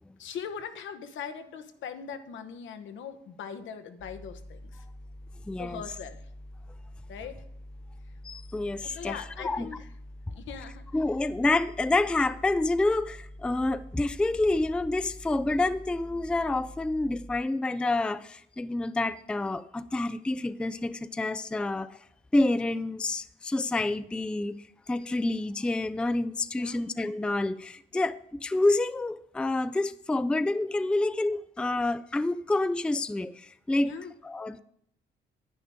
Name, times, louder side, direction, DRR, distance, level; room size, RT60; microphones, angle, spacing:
voice 1, 0.2-4.8 5.6-6.2 7.1-7.4 8.8-9.9 10.3-10.9 26.5-26.8 33.8-34.1, left 7 dB, 75° left, 8 dB, 1.0 m, -40 dB
sound 1, 4.0-17.4, left 1 dB, 35° left, 1.2 m, -46 dB
voice 2, 5.5-5.8 8.2-9.7 10.9-22.0 22.3-24.6 24.9-33.9 34.2-34.6, left 2 dB, 5° left, 12 dB, 0.3 m, -28 dB
10.0 x 9.2 x 3.5 m, 0.71 s
cardioid pair, 90°, 20 cm